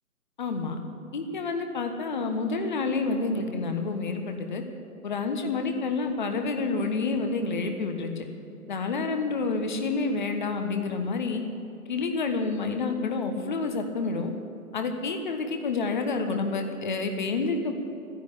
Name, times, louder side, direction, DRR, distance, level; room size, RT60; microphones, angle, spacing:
voice 1, 0.4-0.8 1.1-4.6 5.0-8.2 8.7-11.4 11.9-14.3 14.7-17.7, left 4 dB, 30° left, 6 dB, 1.3 m, -28 dB
14.5 x 10.5 x 8.5 m, 2.8 s
figure-of-eight pair, 145°, 45 cm